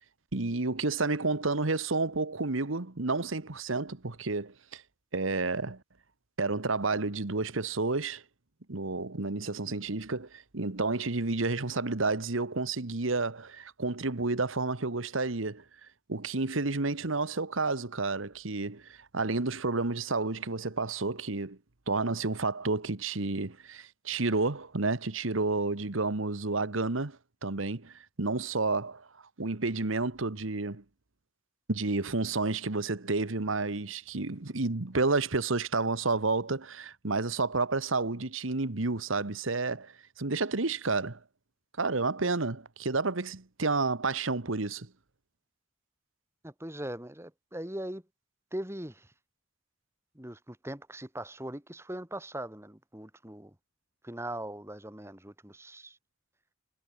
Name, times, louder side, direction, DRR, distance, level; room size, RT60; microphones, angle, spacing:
voice 1, 0.3-4.8 5.1-5.8 6.4-8.2 8.7-15.6 16.1-21.6 21.9-29.1 29.4-30.8 31.7-41.2 41.8-44.9, right 3 dB, 85° right, 1.5 m, -30 dB
voice 2, 46.4-48.0 48.5-49.1 50.2-53.5 54.0-56.0, right 1 dB, 15° right, 2.5 m, -40 dB
head